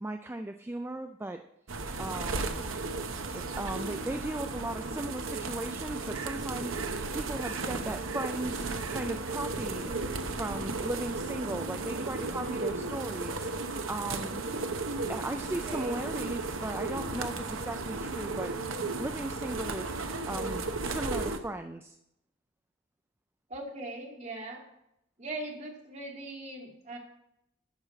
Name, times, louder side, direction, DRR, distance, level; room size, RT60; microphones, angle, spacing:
voice 1, 0.0-1.4 2.0-2.6 3.3-8.6 8.9-9.9 10.4-13.5 13.9-14.4 15.1-18.5 19.0-19.9 20.3-22.0, right 1 dB, 10° right, 7 dB, 0.4 m, -37 dB
sound 1, 1.7-21.4, right 3 dB, 90° right, 1.0 m, -35 dB
voice 2, 15.6-16.0 23.5-24.6 25.2-27.0, right 2 dB, 35° right, 0 dB, 2.4 m, -40 dB
12.5 x 4.9 x 7.4 m, 0.80 s
head